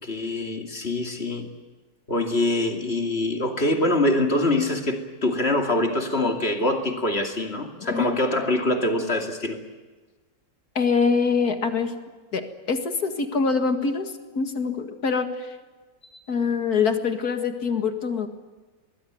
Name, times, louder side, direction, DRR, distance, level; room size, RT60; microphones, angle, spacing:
voice 1, 0.0-1.5 2.1-9.6 16.1-16.2, left 1 dB, 35° left, 4 dB, 2.9 m, -24 dB
voice 2, 10.8-11.9 12.3-12.4 12.7-15.6 16.3-18.3, left 5 dB, 60° left, 7 dB, 2.4 m, -24 dB
24.0 x 20.5 x 9.4 m, 1.3 s
omnidirectional pair, 1.8 m